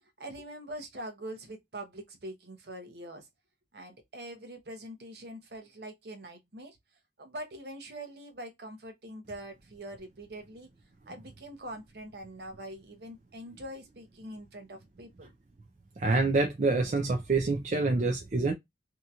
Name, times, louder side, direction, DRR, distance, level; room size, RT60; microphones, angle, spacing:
voice 1, 0.2-3.2 3.7-6.8 7.2-10.7 11.1-15.3, right 1 dB, 65° right, 0.8 m, -43 dB
voice 2, 16.0-18.5, right 3 dB, 40° right, 0.4 m, -26 dB
2.8 x 2.7 x 2.3 m
head